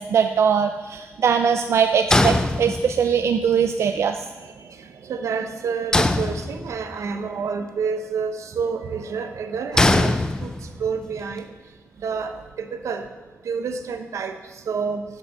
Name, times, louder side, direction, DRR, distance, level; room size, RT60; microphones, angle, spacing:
voice 1, 0.0-4.2, right 7 dB, 65° right, 6 dB, 0.5 m, -21 dB
sound 1, 2.1-3.2 5.9-7.0 9.8-10.9, left 2 dB, 15° left, 0.4 m, -21 dB
voice 2, 4.4-10.1 10.4-10.5 10.8-11.5 12.0-13.0 13.4-15.0, right 5 dB, 85° right, 7 dB, 0.9 m, -29 dB
10.5 x 6.0 x 6.7 m, 1.3 s
wide cardioid pair, 155°, 5 cm